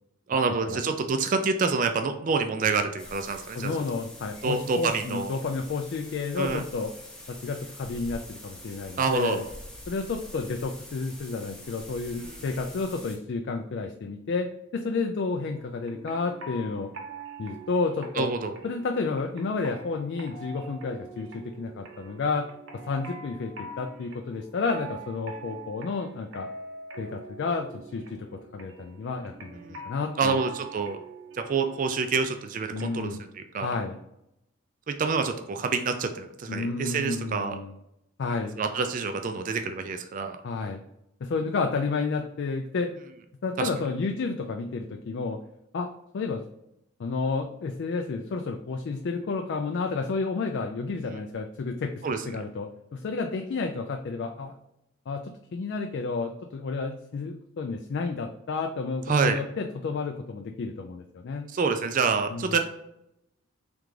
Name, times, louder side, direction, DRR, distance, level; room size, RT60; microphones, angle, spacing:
voice 1, 0.3-3.7 4.4-5.4 6.4-6.6 9.0-9.4 12.2-12.4 18.2-18.6 29.5-29.8 30.2-31.0 31.3-33.7 34.9-37.6 38.6-40.4 43.6-43.7 52.0-52.2 59.1-59.4 61.5-62.6, right 4 dB, 40° right, 6 dB, 0.3 m, -27 dB
sound 1, 3.0-13.2, left 1 dB, 5° left, 0.7 m, -45 dB
voice 2, 3.5-6.9 7.3-9.5 9.9-14.5 14.7-16.9 17.4-18.3 18.6-22.5 22.8-26.5 27.0-28.3 28.5-29.5 29.8-30.4 32.7-33.2 33.6-34.0 36.5-37.7 38.2-38.6 40.4-40.8 41.2-42.9 43.4-45.4 45.7-45.9 46.1-46.4 47.0-54.5 55.1-61.5 62.3-62.5, left 4 dB, 55° left, 4 dB, 0.3 m, -31 dB
sound 2, 15.4-33.1, right 3 dB, 65° right, 0.8 m, -44 dB
3.7 x 3.4 x 3.1 m, 0.82 s
head